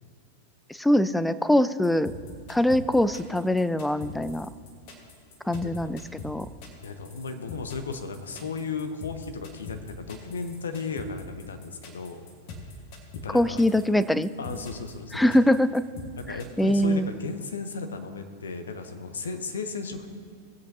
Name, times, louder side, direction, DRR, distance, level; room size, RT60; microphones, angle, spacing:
voice 1, 0.8-2.1 2.5-4.5 5.5-6.5 13.3-14.3 15.1-15.8 16.6-17.1, left 1 dB, 5° left, 14 dB, 0.3 m, -23 dB
sound 1, 1.8-16.5, left 3 dB, 45° left, 1.6 m, -42 dB
voice 2, 5.4-5.9 6.8-12.2 13.1-13.6 14.4-15.3 16.2-20.1, left 4 dB, 70° left, 8 dB, 0.8 m, -35 dB
18.5 x 8.0 x 2.8 m, 2.3 s
figure-of-eight pair, 90°, 0 cm